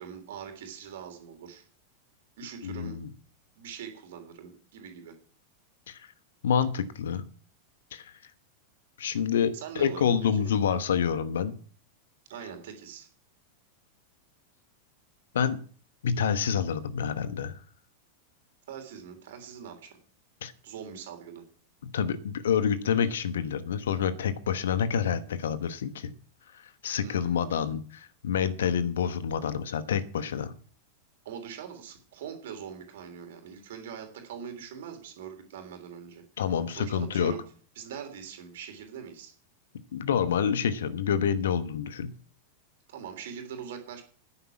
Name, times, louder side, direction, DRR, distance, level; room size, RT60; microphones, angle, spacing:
voice 1, 0.0-1.7 2.4-3.0 3.6-5.1 9.5-10.5 12.3-13.1 18.7-20.0 20.6-21.4 26.9-27.6 31.2-36.2 36.8-37.4 37.7-39.3 42.9-44.0, right 8 dB, 55° right, 5 dB, 3.2 m, -42 dB
voice 2, 2.6-3.1 5.9-6.1 6.4-7.2 7.9-8.1 9.0-11.5 15.3-15.6 16.0-17.6 20.4-20.5 21.8-26.1 26.5-30.5 36.4-37.3 39.9-42.1, left 7 dB, 60° left, 13 dB, 1.1 m, -28 dB
11.0 x 10.0 x 6.0 m, 0.43 s
figure-of-eight pair, 90°, 0 cm